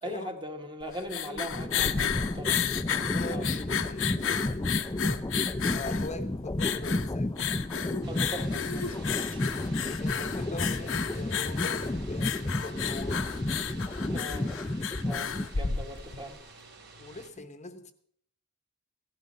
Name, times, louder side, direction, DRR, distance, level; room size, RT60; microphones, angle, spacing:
voice 1, 0.0-2.5 3.3-3.4 8.1-9.4 14.1-14.5 15.0-16.4, equal, 25° right, 1.5 m, -40 dB
sound 1, 0.8-16.3, left 8 dB, 65° left, 0.8 m, -33 dB
voice 2, 0.8-1.7 2.5-5.4 5.7-7.4 9.2-13.2 15.9-16.1 17.0-17.9, left 2 dB, 35° left, 0.9 m, -42 dB
sound 2, 1.5-15.7, left 1 dB, 15° left, 0.5 m, -32 dB
sound 3, 8.0-17.3, right 3 dB, 55° right, 2.7 m, -51 dB
16.0 x 12.0 x 5.3 m
head